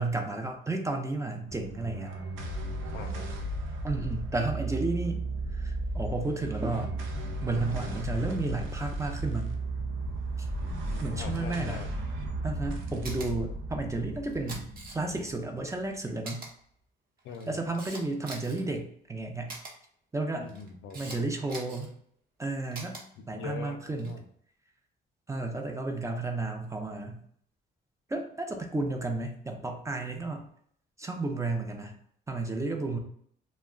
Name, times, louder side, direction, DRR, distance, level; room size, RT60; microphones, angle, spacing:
voice 1, 0.0-2.1 3.8-5.2 5.5-6.9 7.4-9.6 10.4-10.5 11.0-11.8 12.4-14.7 14.9-16.4 17.5-19.6 20.1-20.5 20.9-21.9 22.4-23.0 23.3-24.2 25.3-27.2 28.1-30.4 31.0-31.9 32.3-33.0, right 2 dB, 15° right, 3 dB, 0.4 m, -32 dB
sound 1, 1.5-16.1, right 2 dB, 85° right, 0.5 m, -35 dB
voice 2, 2.9-3.3 10.6-11.9 17.2-17.6 20.4-21.2 23.2-24.2, left 5 dB, 85° left, 5 dB, 0.4 m, -42 dB
Camera, 13.0-13.3 14.3-15.2 15.7-15.8 16.2-16.5 17.2-18.6 19.5-19.7 20.5-21.2 21.5-21.9 22.7-23.0 23.9-24.2, right 2 dB, 45° right, 0.9 m, -42 dB
2.3 x 2.1 x 3.5 m, 0.63 s
cardioid pair, 90°, 20 cm